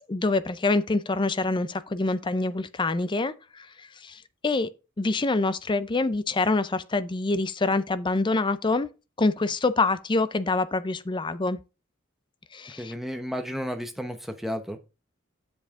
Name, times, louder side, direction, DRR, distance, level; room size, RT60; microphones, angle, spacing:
voice 1, 0.1-3.7 4.0-4.7 5.0-8.9 9.2-11.6 12.5-12.9, left 3 dB, 25° left, 0.5 m, -26 dB
voice 2, 12.8-14.8, equal, ahead, 0.9 m, -32 dB
7.9 x 7.2 x 3.6 m
head